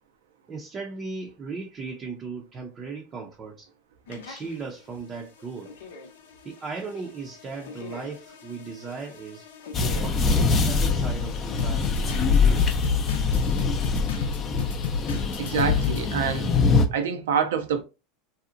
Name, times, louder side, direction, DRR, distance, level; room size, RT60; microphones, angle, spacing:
voice 1, 0.5-3.7 4.1-5.7 6.4-9.5 9.8-12.7, right 4 dB, 30° right, 0.5 m, -37 dB
sound 1, 4.1-4.5 5.4-16.0, left 6 dB, 85° left, 0.6 m, -35 dB
sound 2, 9.7-16.9, left 4 dB, 30° left, 0.4 m, -23 dB
voice 2, 15.4-16.6 16.9-17.8, right 7 dB, 80° right, 0.5 m, -26 dB
2.7 x 2.0 x 2.4 m
hypercardioid pair, 105°, 0 cm